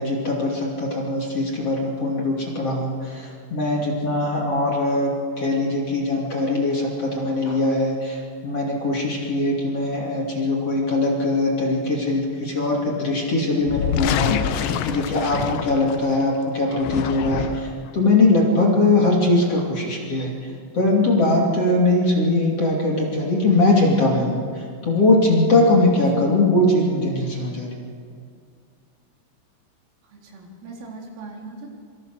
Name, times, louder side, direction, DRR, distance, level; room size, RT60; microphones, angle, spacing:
voice 1, 0.0-27.7, left 2 dB, 35° left, -2 dB, 3.2 m, -21 dB
sound 1, 13.6-16.2 16.7-17.9, left 10 dB, 75° left, 2.8 m, -26 dB
voice 2, 30.0-31.7, right 3 dB, 85° right, -1 dB, 6.4 m, -40 dB
26.0 x 25.0 x 6.4 m, 2.3 s
omnidirectional pair, 5.7 m